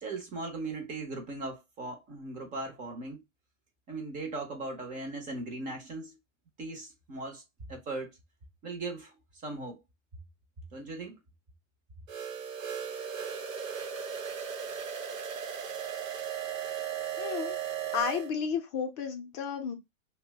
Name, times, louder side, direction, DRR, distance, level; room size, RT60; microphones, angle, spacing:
voice 1, 0.0-3.2 3.9-6.2 6.6-7.4 7.7-8.2 8.6-9.8 10.7-11.2, right 2 dB, 20° right, 0.5 m, -38 dB
sound 1, 12.1-18.3, right 8 dB, 85° right, 0.8 m, -36 dB
voice 2, 17.2-17.6 17.9-19.7, left 6 dB, 35° left, 0.5 m, -32 dB
2.7 x 2.1 x 3.3 m
hypercardioid pair, 130°, 39 cm